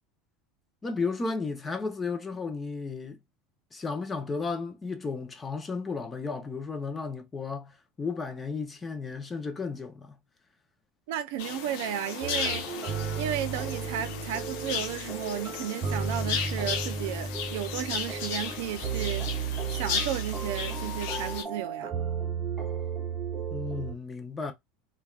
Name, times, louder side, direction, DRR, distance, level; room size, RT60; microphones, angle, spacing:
voice 1, 0.8-3.2 3.7-10.2 23.5-24.5, left 4 dB, 15° left, 0.5 m, -34 dB
voice 2, 11.1-12.7 13.2-19.3 19.7-21.9, right 11 dB, 70° right, 0.4 m, -33 dB
sound 1, 11.4-21.4, left 7 dB, 70° left, 0.7 m, -35 dB
sound 2, 12.2-23.9, right 6 dB, 5° right, 1.0 m, -34 dB
3.3 x 2.2 x 2.3 m
supercardioid pair, 155°, 0 cm